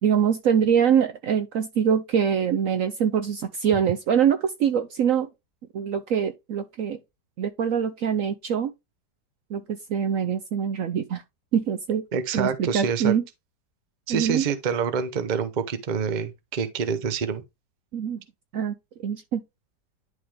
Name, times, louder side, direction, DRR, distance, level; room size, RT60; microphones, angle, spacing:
voice 1, 0.0-5.3 5.7-7.0 7.4-8.7 9.5-11.2 11.5-12.0 12.3-13.2 14.1-14.4 17.9-18.2 18.5-18.7 19.0-19.4, right 8 dB, 65° right, 0.9 m, -24 dB
voice 2, 12.1-13.1 14.1-17.4, right 6 dB, 40° right, 0.7 m, -27 dB
11.0 x 3.7 x 3.3 m
omnidirectional pair, 1.8 m